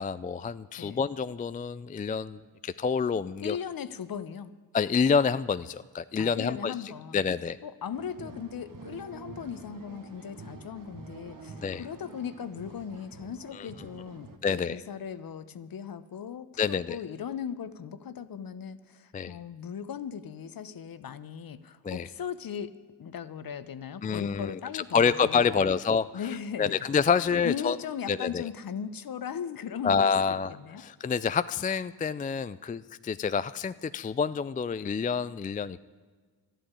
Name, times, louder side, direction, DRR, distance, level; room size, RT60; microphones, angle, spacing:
voice 1, 0.0-3.6 4.7-6.7 7.1-7.6 11.6-11.8 13.5-13.7 14.4-14.8 16.6-17.0 19.1-19.4 21.8-22.1 24.0-26.0 26.6-27.8 28.1-28.5 29.8-30.5 30.8-35.8, left 6 dB, 20° left, 14 dB, 0.4 m, -27 dB
voice 2, 3.4-4.5 6.2-7.2 7.6-25.7 26.1-26.9 27.4-30.8, left 8 dB, 50° left, 14 dB, 0.9 m, -38 dB
sound 1, 7.9-14.4, right 4 dB, 45° right, 1.6 m, -47 dB
12.5 x 9.0 x 9.7 m, 1.5 s
supercardioid pair, 50°, 45 cm